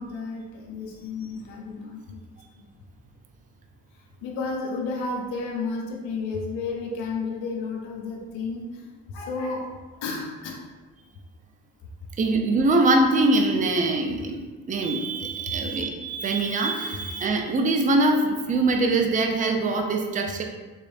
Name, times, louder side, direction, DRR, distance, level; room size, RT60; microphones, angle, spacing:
voice 1, 0.0-2.2 4.2-8.8 9.1-9.7 10.0-10.5, left 4 dB, 65° left, -1 dB, 0.8 m, -32 dB
voice 2, 12.2-20.4, right 2 dB, 20° right, 3 dB, 0.5 m, -23 dB
3.6 x 3.2 x 2.6 m, 1.3 s
hypercardioid pair, 45°, 48 cm